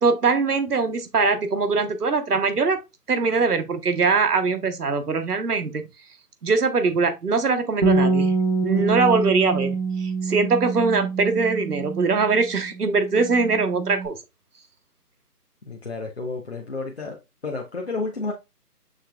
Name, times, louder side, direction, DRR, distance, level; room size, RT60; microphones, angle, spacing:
voice 1, 0.0-2.8 3.1-5.9 6.4-8.4 8.6-14.2, right 4 dB, 70° right, 1.0 m, -22 dB
Bass guitar, 7.8-14.1, right 3 dB, 40° right, 0.9 m, -25 dB
voice 2, 15.7-17.2 17.4-18.3, left 3 dB, 40° left, 0.7 m, -31 dB
6.4 x 3.1 x 2.3 m
figure-of-eight pair, 160°, 48 cm